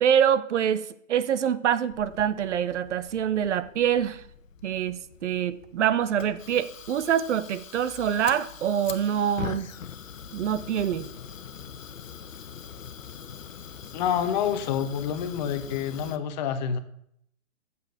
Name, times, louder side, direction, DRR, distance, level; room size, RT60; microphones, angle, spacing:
voice 1, 0.0-4.2 4.6-9.7 10.3-11.1, right 9 dB, 65° right, 16 dB, 0.8 m, -25 dB
Fire, 1.9-16.2, left 7 dB, 85° left, 1.0 m, -42 dB
voice 2, 13.9-16.8, left 8 dB, 35° left, 10 dB, 0.9 m, -28 dB
7.2 x 6.8 x 6.6 m, 0.72 s
hypercardioid pair, 140°, 38 cm